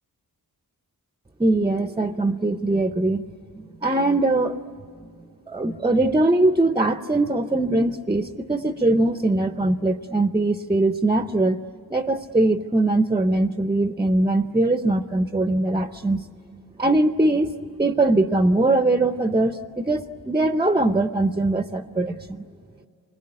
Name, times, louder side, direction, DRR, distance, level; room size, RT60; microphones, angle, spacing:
voice 1, 1.4-3.2 3.5-4.6 5.5-11.6 11.9-16.2 16.8-22.4, right 2 dB, 15° right, 9 dB, 0.6 m, -21 dB
27.5 x 21.5 x 9.8 m, 2.4 s
wide cardioid pair, 135°, 37 cm